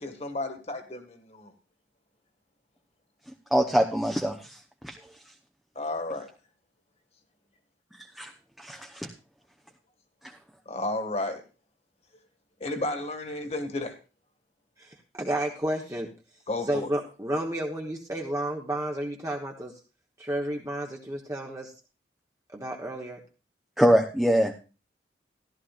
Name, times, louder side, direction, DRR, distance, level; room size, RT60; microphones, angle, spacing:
voice 1, 0.0-1.5 5.8-6.3 10.7-11.4 12.6-13.9 16.5-16.9, left 2 dB, 40° left, 6 dB, 1.9 m, -32 dB
voice 2, 3.5-4.6 4.8-4.9 8.2-8.3 8.6-9.1 23.8-24.5, equal, ahead, 2 dB, 0.8 m, -23 dB
voice 3, 14.8-16.1 16.7-19.7 20.2-21.7 22.5-23.2, right 1 dB, 20° right, 0 dB, 1.2 m, -31 dB
14.5 x 13.0 x 2.5 m, 0.33 s
head